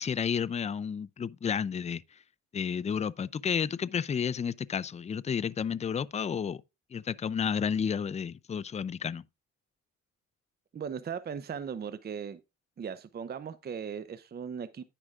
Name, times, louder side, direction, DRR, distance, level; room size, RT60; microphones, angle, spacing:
voice 1, 0.0-2.2 2.5-6.6 6.9-9.2, left 7 dB, 25° left, 0.4 m, -31 dB
voice 2, 10.7-12.4 12.8-14.8, right 7 dB, 30° right, 0.6 m, -38 dB
10.0 x 9.9 x 2.4 m
cardioid pair, 90°, 30 cm